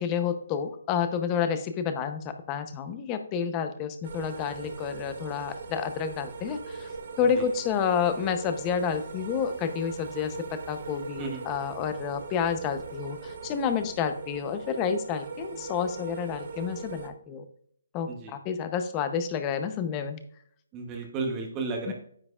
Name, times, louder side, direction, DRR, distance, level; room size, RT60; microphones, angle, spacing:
voice 1, 0.0-6.9 7.2-17.4 17.9-20.2 21.9-22.0, left 7 dB, 15° left, 9 dB, 0.7 m, -29 dB
sound 1, 4.0-17.1, right 4 dB, 45° right, 0.9 m, -40 dB
voice 2, 20.7-21.9, right 4 dB, 15° right, 2 dB, 0.9 m, -33 dB
9.6 x 7.7 x 2.4 m, 0.63 s
hypercardioid pair, 170°, 0 cm